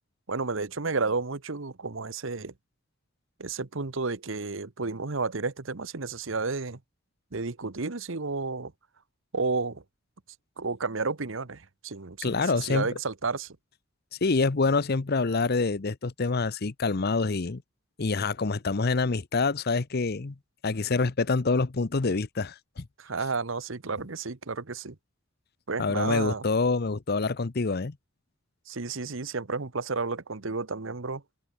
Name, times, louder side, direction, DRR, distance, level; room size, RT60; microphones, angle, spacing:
voice 1, 0.3-2.5 3.4-6.8 7.3-8.7 9.3-9.8 10.6-13.6 23.0-25.0 25.7-26.5 28.7-31.2, right 4 dB, 65° right, 1.1 m, -32 dB
voice 2, 12.2-12.9 14.2-17.6 18.0-20.4 20.6-22.9 25.8-28.0, left 3 dB, 50° left, 0.7 m, -26 dB
head